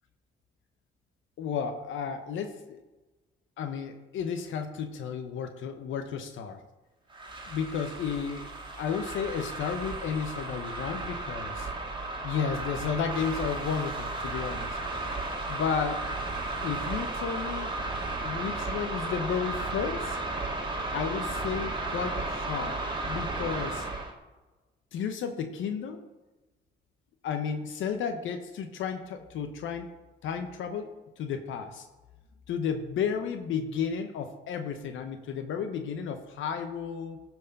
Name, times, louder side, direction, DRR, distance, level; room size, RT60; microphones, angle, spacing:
voice 1, 1.4-2.8 3.6-6.6 7.5-8.5 8.8-11.7 12.2-14.8 15.5-16.1 16.6-17.7 18.2-20.2 20.9-23.9 24.9-26.0 27.2-30.0 30.2-31.9 32.5-37.2, left 6 dB, 75° left, 7 dB, 0.9 m, -33 dB
sound 1, 7.1-24.1, right 2 dB, 25° right, 1.8 m, -34 dB
14.0 x 4.7 x 5.3 m, 1.2 s
cardioid pair, 90°, 20 cm